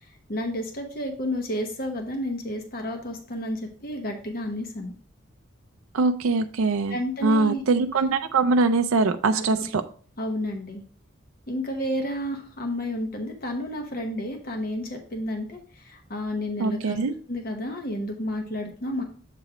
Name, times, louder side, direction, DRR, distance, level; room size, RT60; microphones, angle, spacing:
voice 1, 0.3-4.9 6.9-7.6 9.3-9.6 10.2-10.8 11.5-17.0 17.3-19.0, left 1 dB, 45° left, 3 dB, 0.9 m, -31 dB
voice 2, 5.9-9.8 16.6-17.1, right 3 dB, 90° right, 7 dB, 0.5 m, -23 dB
7.5 x 3.1 x 4.8 m, 0.42 s
head